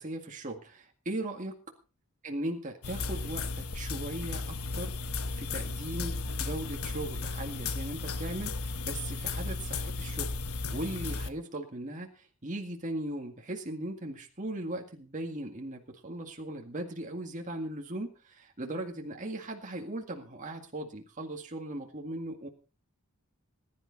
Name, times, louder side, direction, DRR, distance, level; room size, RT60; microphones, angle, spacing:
voice 1, 0.0-1.6 2.2-4.9 5.4-10.3 10.7-22.5, right 1 dB, 35° right, 2 dB, 2.0 m, -38 dB
sound 1, 2.8-11.3, left 3 dB, 80° left, 1.1 m, -35 dB
20.0 x 11.5 x 4.1 m, 0.35 s
head